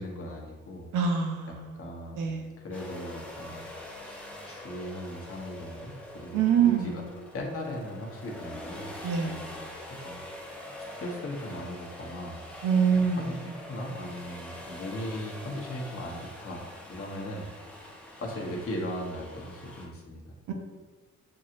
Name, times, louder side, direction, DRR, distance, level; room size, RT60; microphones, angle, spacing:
voice 1, 0.0-0.9 1.5-2.3 2.6-3.6 4.0-8.9 9.2-10.6 11.0-12.5 12.9-17.5 18.2-20.4, left 1 dB, 45° left, -1 dB, 1.0 m, -38 dB
voice 2, 0.9-1.8 2.2-2.5 6.3-7.1 9.0-9.3 12.6-13.4 20.5-20.6, right 7 dB, 80° right, 2 dB, 0.8 m, -25 dB
sound 1, 2.7-19.9, left 1 dB, 5° left, 0.8 m, -44 dB
6.4 x 2.9 x 2.5 m, 1.3 s
cardioid pair, 90°, 30 cm